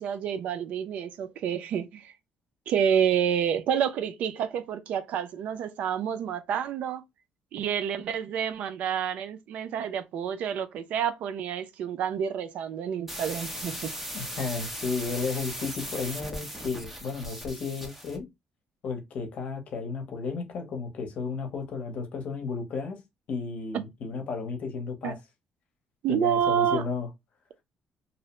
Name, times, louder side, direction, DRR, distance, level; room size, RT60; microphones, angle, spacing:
voice 1, 0.0-2.1 2.7-7.0 7.5-13.9 23.7-23.8 25.0-25.1 26.0-26.8, right 8 dB, 70° right, 0.4 m, -28 dB
sound 1, 13.1-18.2, equal, 5° right, 0.7 m, -38 dB
voice 2, 14.1-18.3 18.8-23.0 23.3-25.2 26.1-27.1, left 4 dB, 60° left, 0.8 m, -33 dB
2.7 x 2.0 x 2.9 m
cardioid pair, 115°, 2 cm